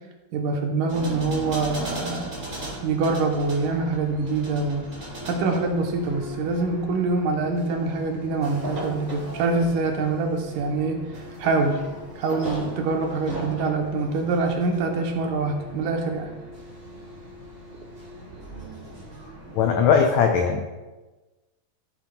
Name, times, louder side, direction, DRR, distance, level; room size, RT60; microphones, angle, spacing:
voice 1, 0.3-2.3 2.8-4.9 5.2-11.0 11.4-11.8 12.2-16.3, right 3 dB, 75° right, 2 dB, 2.4 m, -25 dB
sound 1, 0.9-20.0, right 1 dB, 30° right, 3.3 m, -38 dB
voice 2, 19.5-20.7, left 6 dB, 90° left, 4 dB, 1.6 m, -19 dB
13.5 x 7.2 x 2.2 m, 1.2 s
omnidirectional pair, 3.9 m